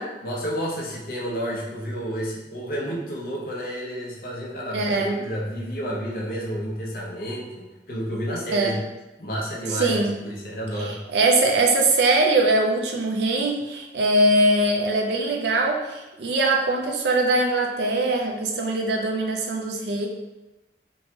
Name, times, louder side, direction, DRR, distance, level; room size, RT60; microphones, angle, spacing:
voice 1, 0.2-8.8 9.2-11.0, equal, 50° left, -3 dB, 0.7 m, -30 dB
voice 2, 4.7-5.2 8.5-8.8 9.7-10.2 10.8-20.1, right 2 dB, 70° right, 0 dB, 0.4 m, -22 dB
3.1 x 2.2 x 2.8 m, 1.0 s
head